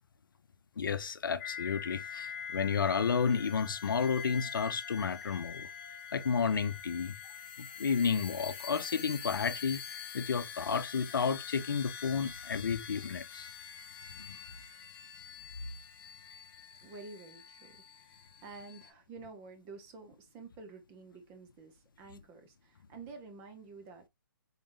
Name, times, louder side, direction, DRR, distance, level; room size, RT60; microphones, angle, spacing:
voice 1, 0.8-5.7 6.1-7.1 7.6-9.8 10.1-13.5 14.1-14.4, left 6 dB, 70° left, 0.6 m, -32 dB
sound 1, 1.4-18.9, left 7 dB, 30° left, 1.1 m, -45 dB
voice 2, 16.8-24.1, right 4 dB, 20° right, 0.7 m, -50 dB
4.0 x 3.6 x 2.6 m
hypercardioid pair, 145°, 12 cm